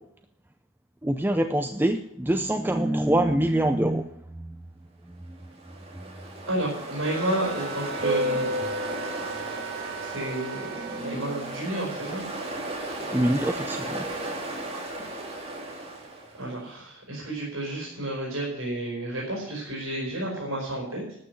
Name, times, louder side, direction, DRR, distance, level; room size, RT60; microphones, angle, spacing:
voice 1, 1.0-4.1 4.4-4.6 13.1-14.1, right 1 dB, 10° right, 7 dB, 0.4 m, -24 dB
Ocean, 5.4-16.5, right 1 dB, 25° right, 2.5 m, -34 dB
voice 2, 6.4-8.5 10.0-12.2 16.3-21.0, right 1 dB, 65° right, -3 dB, 4.4 m, -31 dB
sound 1, 7.0-11.1, right 5 dB, 45° right, 4.9 m, -38 dB
12.5 x 6.3 x 9.5 m, 0.78 s
head